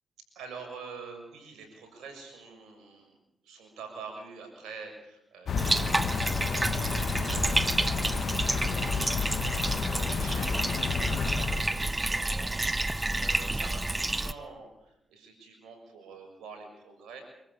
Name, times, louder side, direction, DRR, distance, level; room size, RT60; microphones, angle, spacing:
voice 1, 0.3-3.1 3.4-5.9 6.4-9.2 9.5-17.2, right 4 dB, 85° right, 4 dB, 6.7 m, -46 dB
sound 1, 5.5-11.8, left 6 dB, 70° left, 1.2 m, -31 dB
Bathtub (filling or washing), 5.6-14.3, right 2 dB, 25° right, 1.3 m, -29 dB
25.5 x 14.5 x 8.4 m, 0.86 s
supercardioid pair, 45°, 0 cm